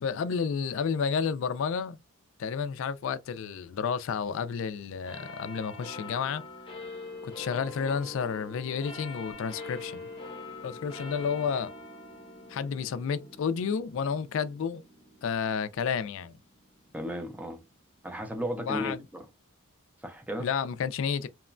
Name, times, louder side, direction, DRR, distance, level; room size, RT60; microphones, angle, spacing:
voice 1, 0.0-2.0 2.4-6.4 7.2-10.1 10.6-11.7 12.5-14.8 15.2-16.4 18.6-19.0 20.4-21.3, left 6 dB, 65° left, 0.3 m, -31 dB
sound 1, 5.1-17.9 18.6-18.7, left 2 dB, 25° left, 0.7 m, -44 dB
voice 2, 16.9-17.6 18.0-19.2 20.0-20.5, equal, 5° right, 0.5 m, -34 dB
2.9 x 2.1 x 2.4 m
head